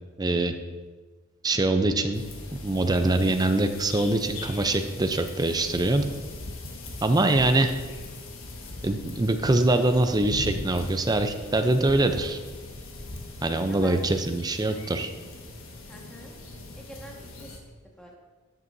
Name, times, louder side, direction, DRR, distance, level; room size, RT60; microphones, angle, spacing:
voice 1, 0.2-0.5 1.4-2.2 2.6-6.0 7.0-7.7 8.8-12.4 13.4-15.1, right 2 dB, 20° right, 7 dB, 0.5 m, -23 dB
sound 1, 2.1-17.6, left 2 dB, 70° left, 1.4 m, -40 dB
voice 2, 13.7-14.1 15.9-16.3 16.7-18.2, equal, 5° left, -2 dB, 1.5 m, -46 dB
13.0 x 8.2 x 2.7 m, 1.3 s
head